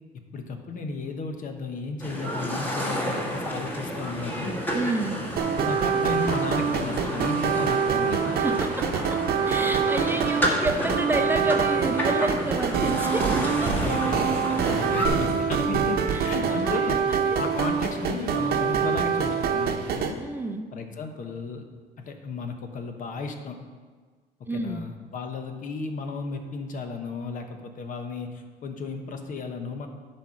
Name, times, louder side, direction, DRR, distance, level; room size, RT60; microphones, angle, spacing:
voice 1, 0.3-4.7 5.6-8.4 13.3-17.1 17.4-20.2 20.7-21.6 22.0-23.6 24.5-29.9, left 4 dB, 50° left, 5 dB, 1.0 m, -34 dB
sound 1, 2.0-15.1, equal, 10° left, 1.5 m, -31 dB
voice 2, 4.7-5.2 8.3-9.2 9.4-13.9 16.1-16.8 17.1-17.5 20.2-20.7 24.5-24.9, right 2 dB, 10° right, 4 dB, 0.6 m, -30 dB
sound 2, 5.4-20.1, right 6 dB, 65° right, 0.9 m, -25 dB
sound 3, 12.4-19.9, left 3 dB, 75° left, 2.0 m, -48 dB
10.0 x 4.4 x 6.3 m, 1.5 s
cardioid pair, 110°, 17 cm